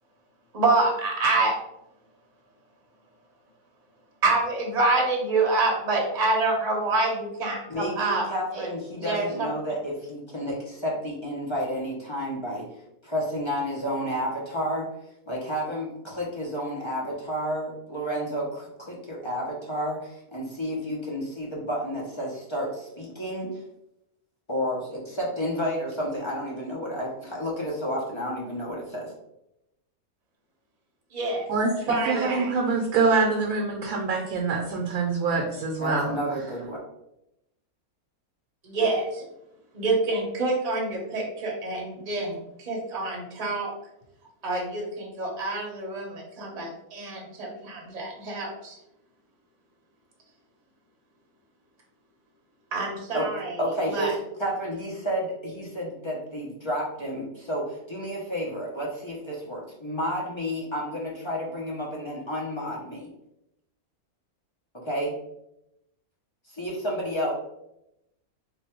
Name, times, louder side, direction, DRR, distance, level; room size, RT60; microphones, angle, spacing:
voice 1, 0.5-1.5 4.2-8.3 8.5-8.7 8.9-9.5 31.1-31.4 31.8-32.5 38.6-39.2 39.7-43.7 44.4-48.8 52.7-53.6 53.9-54.1, right 3 dB, 35° right, -1 dB, 0.8 m, -26 dB
voice 2, 7.7-12.7 13.0-14.9 15.3-23.5 24.5-29.1 35.8-36.8 53.1-53.3 53.6-63.1 64.8-65.1 66.5-67.3, equal, 40° left, -4 dB, 0.4 m, -31 dB
voice 3, 31.5-36.2, right 4 dB, 75° right, 1 dB, 1.0 m, -25 dB
3.2 x 2.2 x 4.3 m, 0.85 s
omnidirectional pair, 1.6 m